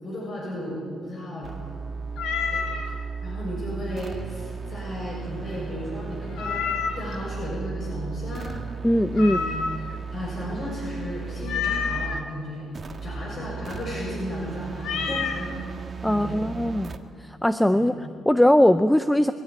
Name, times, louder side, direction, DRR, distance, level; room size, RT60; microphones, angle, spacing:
voice 1, 0.0-1.6 2.5-6.7 7.0-8.6 9.2-9.6 10.1-12.7 13.0-15.6 16.1-16.4 17.7-17.9, left 1 dB, 50° left, -4 dB, 6.9 m, -34 dB
sound 1, 1.4-12.3 12.7-17.0, right 5 dB, 35° right, 1.5 m, -35 dB
Meow, 2.2-2.9 6.4-7.1 9.2-10.0 11.4-12.2 14.8-15.4, left 6 dB, 80° left, 2.0 m, -28 dB
voice 2, 8.8-9.4 16.0-16.9 17.2-19.3, left 1 dB, 5° left, 11 dB, 0.6 m, -20 dB
24.0 x 12.0 x 9.9 m, 2.2 s
cardioid pair, 90°, 0 cm